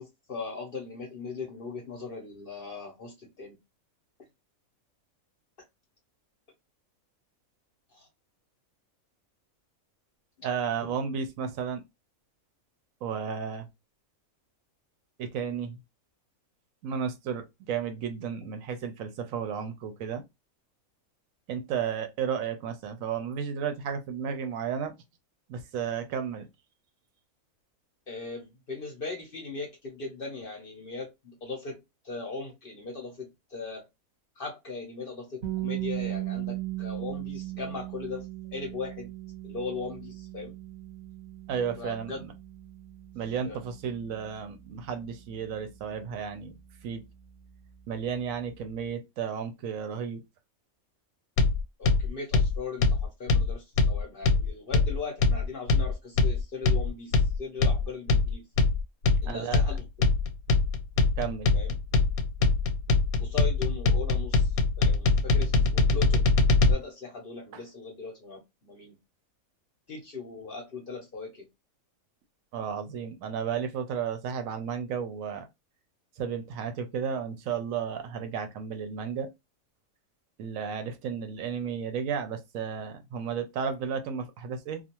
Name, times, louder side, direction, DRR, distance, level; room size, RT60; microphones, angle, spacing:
voice 1, 0.0-3.6 7.9-8.1 10.4-10.5 10.8-11.0 28.1-33.9 34.4-39.1 39.4-40.5 41.8-42.2 43.4-43.6 51.8-58.5 59.2-59.9 61.5-61.8 63.1-66.3 66.7-69.0 69.9-71.5, left 4 dB, 50° left, 0.7 m, -39 dB
voice 2, 10.4-11.8 13.0-13.7 15.2-15.8 16.8-20.2 21.5-24.9 25.5-26.5 41.5-42.1 43.1-46.5 46.8-47.0 47.9-50.2 59.2-59.6 61.2-61.5 67.5-67.6 72.5-75.4 76.2-79.3 80.4-84.8, right 7 dB, 75° right, 0.9 m, -33 dB
sound 1, 35.4-47.3, right 16 dB, 40° right, 0.9 m, -38 dB
sound 2, 51.4-66.7, left 3 dB, 85° left, 1.0 m, -23 dB
2.4 x 2.3 x 2.8 m
omnidirectional pair, 1.5 m